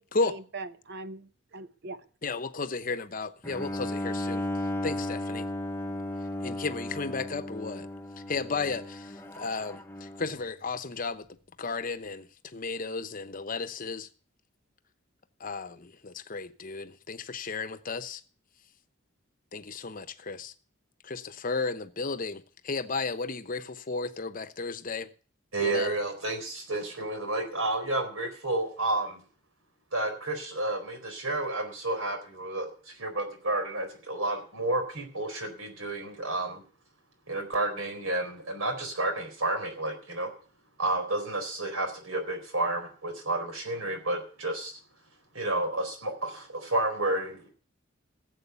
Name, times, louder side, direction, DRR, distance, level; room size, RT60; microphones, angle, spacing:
voice 1, 0.0-2.0, right 2 dB, 50° right, 0.8 m, -41 dB
voice 2, 2.2-4.5 4.8-5.5 6.4-7.9 8.3-11.3 11.6-14.1 15.4-18.2 19.5-20.5 21.0-25.1 25.6-25.9, left 4 dB, 40° left, 0.9 m, -34 dB
Bowed string instrument, 3.4-10.5, left 1 dB, 10° left, 0.7 m, -35 dB
voice 3, 25.5-29.2 29.9-36.6 37.3-40.3 40.8-44.8 45.3-47.5, right 2 dB, 85° right, 4.2 m, -31 dB
15.0 x 8.0 x 6.9 m
head